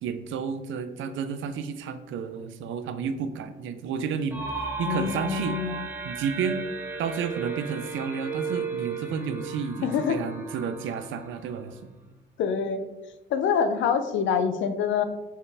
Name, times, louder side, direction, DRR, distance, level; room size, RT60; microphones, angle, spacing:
voice 1, 0.0-5.6 6.0-6.7 7.0-11.8, right 6 dB, 75° right, 10 dB, 0.5 m, -31 dB
sound 1, 4.3-11.9, right 4 dB, 10° right, 0.9 m, -35 dB
voice 2, 4.8-5.9 9.8-10.2 12.4-12.8 13.3-15.0, left 7 dB, 70° left, 9 dB, 0.5 m, -26 dB
4.6 x 3.2 x 3.3 m, 1.1 s
cardioid pair, 90°, 20 cm